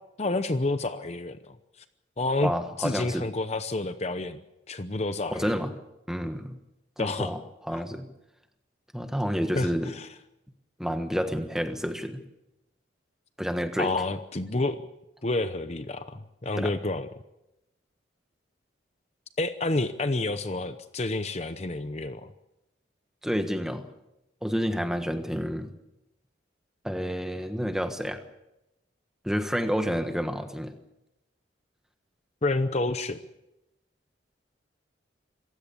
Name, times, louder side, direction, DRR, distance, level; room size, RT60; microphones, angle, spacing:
voice 1, 0.2-1.4 2.2-2.5 2.8-5.6 7.0-7.3 9.5-10.1 13.8-14.8 15.2-17.1 19.4-22.3 32.4-33.2, left 2 dB, 35° left, 10 dB, 0.8 m, -29 dB
voice 2, 2.4-3.3 5.3-5.7 6.1-6.6 7.0-7.4 7.6-8.1 8.9-9.9 10.8-12.2 13.4-13.9 16.6-16.7 23.2-23.9 24.4-25.7 26.8-28.2 29.2-30.7, equal, 5° right, 7 dB, 1.3 m, -29 dB
26.5 x 16.0 x 7.0 m, 0.91 s
head